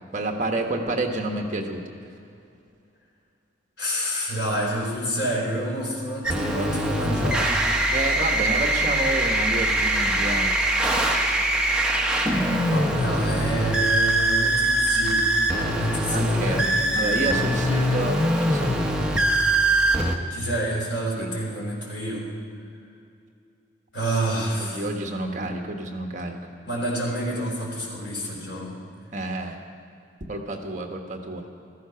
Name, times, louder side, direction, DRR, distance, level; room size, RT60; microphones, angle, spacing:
voice 1, 0.1-1.8 7.9-10.5 16.1-16.7 16.9-18.9 21.2-21.3 24.6-26.4 29.1-29.6 30.3-31.4, right 2 dB, 40° right, 3 dB, 1.3 m, -29 dB
voice 2, 3.8-7.5 12.7-17.3 20.3-22.3 23.9-24.9 26.7-28.8, right 1 dB, 65° left, -3 dB, 4.8 m, -28 dB
sound 1, 6.2-20.2, right 1 dB, 5° right, 1.0 m, -22 dB
15.5 x 14.5 x 5.7 m, 2.5 s
head